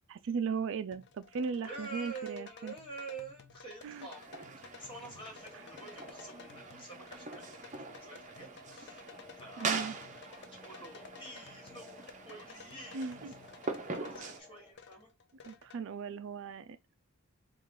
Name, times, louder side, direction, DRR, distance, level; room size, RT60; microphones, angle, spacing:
voice 1, 0.1-2.8 3.8-4.1 9.6-10.0 12.9-13.3 15.4-16.8, right 5 dB, 60° right, 0.4 m, -37 dB
sound 1, 0.9-15.8, left 5 dB, 50° left, 0.5 m, -55 dB
voice 2, 1.6-4.4 4.8-9.0 9.4-9.9 10.6-13.1 13.7-15.1, right 3 dB, 25° left, 1.6 m, -48 dB
sound 2, 3.8-14.4, right 4 dB, 35° right, 0.7 m, -43 dB
sound 3, 5.4-14.7, left 2 dB, 5° left, 1.2 m, -57 dB
4.6 x 2.4 x 3.6 m
head